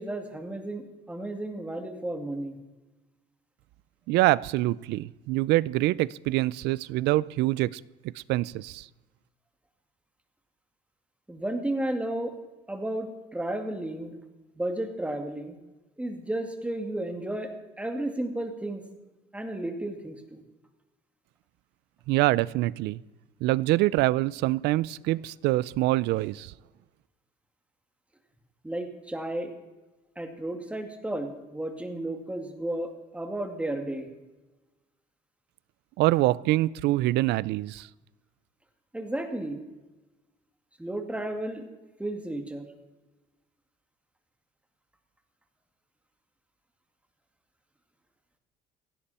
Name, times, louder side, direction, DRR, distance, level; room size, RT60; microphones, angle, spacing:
voice 1, 0.0-2.6 11.3-12.3 12.7-14.2 14.6-15.6 16.0-17.5 17.8-18.8 19.3-20.4 28.6-29.5 30.2-34.1 38.9-39.6 40.8-41.6 42.0-42.7, right 1 dB, 5° right, 5 dB, 2.2 m, -33 dB
voice 2, 4.1-7.8 8.2-8.9 22.1-23.0 23.4-26.5 36.0-37.9, right 17 dB, 85° right, 21 dB, 0.5 m, -25 dB
16.5 x 16.5 x 4.3 m, 1.2 s
cardioid pair, 110°, 17 cm